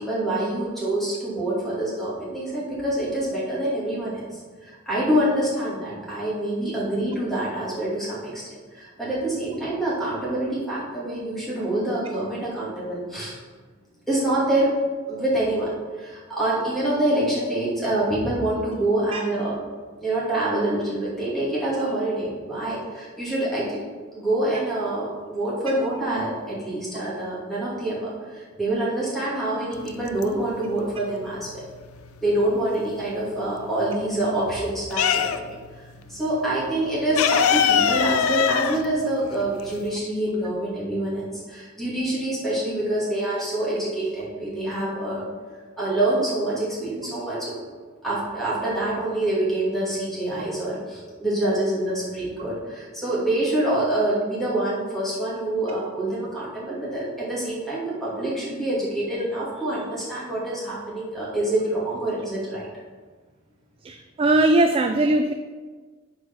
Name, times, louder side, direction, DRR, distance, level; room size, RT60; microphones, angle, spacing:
voice 1, 0.0-13.3 14.1-14.7 15.1-15.7 16.0-19.6 20.0-23.8 24.1-31.6 32.2-35.4 36.1-45.3 45.8-47.6 48.0-62.6, right 1 dB, ahead, -8 dB, 2.4 m, -26 dB
sound 1, 29.8-30.7 31.0-33.0 33.3-35.7 36.0-36.1 36.4-40.0, left 7 dB, 80° left, 0.5 m, -22 dB
voice 2, 63.8-65.3, right 2 dB, 25° right, 6 dB, 0.3 m, -20 dB
6.3 x 4.7 x 6.0 m, 1.4 s
head